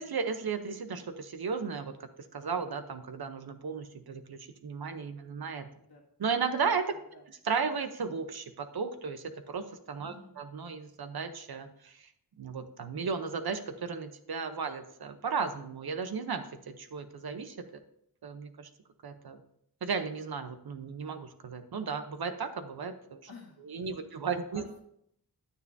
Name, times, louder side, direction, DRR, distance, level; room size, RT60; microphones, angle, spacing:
voice 1, 0.0-5.7 6.2-6.9 7.4-12.1 12.4-17.6 18.2-18.7 19.0-19.4 19.8-23.2 23.6-24.6, right 5 dB, 70° right, 9 dB, 0.9 m, -35 dB
voice 2, 6.9-7.2 10.0-10.3 23.3-23.9 24.2-24.8, left 3 dB, 85° left, -4 dB, 1.9 m, -52 dB
9.7 x 9.1 x 2.7 m, 0.73 s
wide cardioid pair, 85°, 38 cm